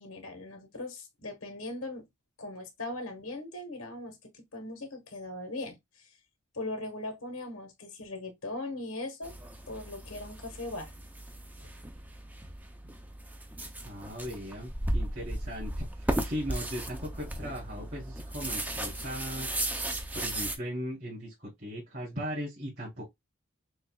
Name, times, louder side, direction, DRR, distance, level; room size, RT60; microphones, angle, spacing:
voice 1, 0.0-2.1 2.4-5.8 6.5-9.4 9.7-10.9 11.6-11.7, left 2 dB, 90° left, 1.2 m, -39 dB
sound 1, 9.2-20.6, right 1 dB, 10° right, 0.4 m, -36 dB
voice 2, 13.8-19.6 20.1-23.0, equal, 45° right, 3.0 m, -38 dB
6.4 x 2.4 x 2.2 m
head